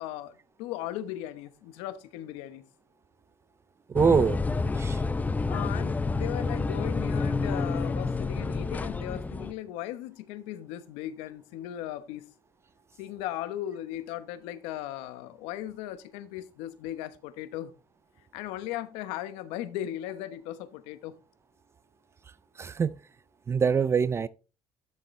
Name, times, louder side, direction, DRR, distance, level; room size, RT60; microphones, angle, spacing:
voice 1, 0.0-2.6 5.5-12.3 13.0-17.7 18.3-21.2, left 12 dB, 85° left, 1.0 m, -37 dB
voice 2, 3.9-4.4 4.8-5.0 22.6-22.9 23.5-24.3, right 6 dB, 25° right, 0.4 m, -24 dB
sound 1, 4.0-9.5, left 3 dB, 15° left, 0.6 m, -29 dB
11.5 x 6.7 x 3.2 m
cardioid pair, 110°, 10 cm